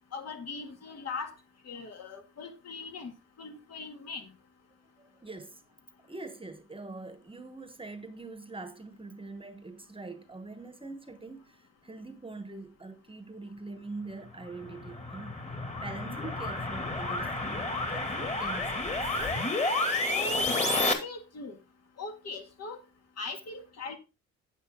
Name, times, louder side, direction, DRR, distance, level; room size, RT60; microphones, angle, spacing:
voice 1, 0.1-1.3 1.7-3.1 3.4-4.3 20.0-21.6 22.0-22.8 23.2-24.0, left 4 dB, 55° left, 2.3 m, -40 dB
voice 2, 5.0-5.6 6.0-15.4 15.8-18.9, right 3 dB, 15° right, 1.2 m, -43 dB
sound 1, 14.4-20.9, left 2 dB, 20° left, 2.3 m, -30 dB
8.9 x 8.2 x 3.7 m
cardioid pair, 90°, 30 cm